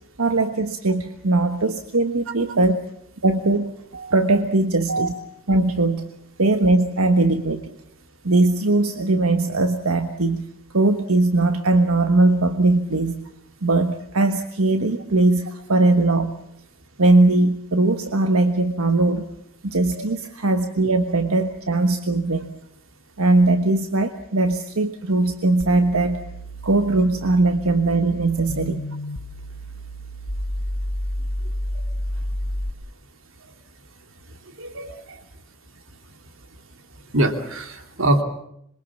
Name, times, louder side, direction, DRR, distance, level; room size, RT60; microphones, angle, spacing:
voice 1, 0.2-2.8 3.2-3.7 4.1-5.1 5.5-6.1 6.4-7.7 8.2-10.5 10.7-13.2 13.6-16.3 17.0-19.3 19.6-22.5 23.2-26.2 26.6-28.9, right 2 dB, 85° right, 7 dB, 1.4 m, -20 dB
sound 1, 25.6-32.7, equal, 70° left, 1.4 m, -30 dB
voice 2, 34.6-35.2 37.1-38.2, right 1 dB, 70° right, 6 dB, 2.9 m, -24 dB
26.5 x 23.0 x 7.3 m, 0.73 s
head